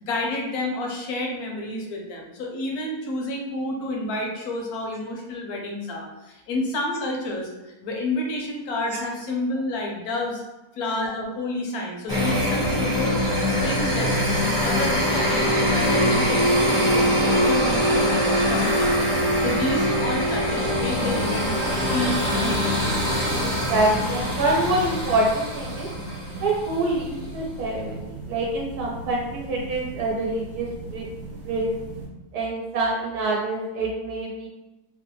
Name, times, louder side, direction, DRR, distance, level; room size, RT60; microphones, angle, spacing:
voice 1, 0.0-10.4 10.7-13.2 13.5-21.5 21.9-23.0, left 2 dB, 75° left, 0 dB, 1.2 m, -30 dB
sound 1, 12.1-26.8, equal, 5° left, 0.6 m, -23 dB
sound 2, 18.8-32.1, right 2 dB, 55° right, 0.9 m, -38 dB
voice 2, 23.4-25.9 26.4-31.1 31.4-31.7 32.3-34.5, right 2 dB, 80° right, -2 dB, 1.1 m, -26 dB
3.1 x 2.2 x 2.9 m, 1.1 s
omnidirectional pair, 1.6 m